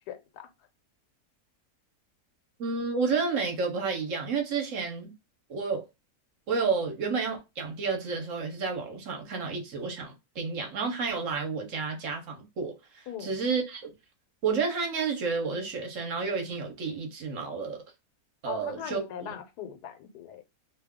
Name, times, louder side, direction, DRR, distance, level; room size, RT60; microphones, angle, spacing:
voice 1, 0.1-0.5 13.1-13.4 18.5-20.4, left 9 dB, 90° left, 1.2 m, -40 dB
voice 2, 2.6-5.1 5.5-5.8 6.5-13.9 14.4-17.8 18.4-19.0, right 5 dB, 60° right, 1.0 m, -31 dB
2.7 x 2.3 x 3.4 m
omnidirectional pair, 1.7 m